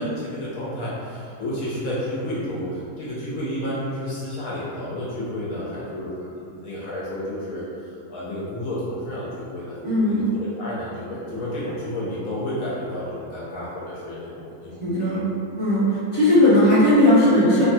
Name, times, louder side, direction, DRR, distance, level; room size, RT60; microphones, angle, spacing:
voice 1, 0.0-7.6 8.1-15.3, left 1 dB, 70° left, -7 dB, 1.0 m, -31 dB
voice 2, 9.8-10.2 14.8-15.2 15.6-17.6, left 1 dB, 10° left, -12 dB, 0.8 m, -17 dB
3.1 x 2.2 x 2.6 m, 2.5 s
omnidirectional pair, 1.6 m